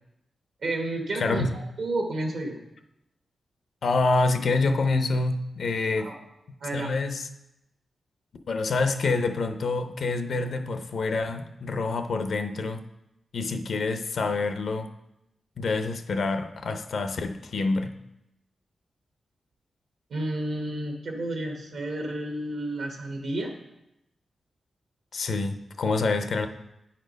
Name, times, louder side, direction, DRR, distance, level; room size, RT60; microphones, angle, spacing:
voice 1, 0.6-1.4 1.8-2.6 6.0-6.2 6.6-6.9 20.1-23.5, right 1 dB, 75° right, 1 dB, 1.1 m, -31 dB
voice 2, 1.1-1.5 3.8-6.1 6.7-7.3 8.5-12.8 13.3-14.9 15.6-17.9 25.1-26.5, left 3 dB, 65° left, 7 dB, 0.5 m, -27 dB
8.7 x 4.4 x 5.1 m, 0.86 s
wide cardioid pair, 115°, 0 cm